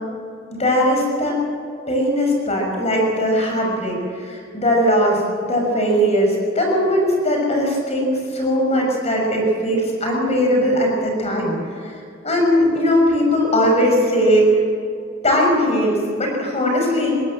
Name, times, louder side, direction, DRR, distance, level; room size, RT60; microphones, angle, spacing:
voice 1, 0.5-1.4 1.9-11.6 12.2-14.5 15.2-17.2, equal, 35° left, 1 dB, 6.2 m, -19 dB
21.0 x 16.5 x 7.6 m, 2.3 s
head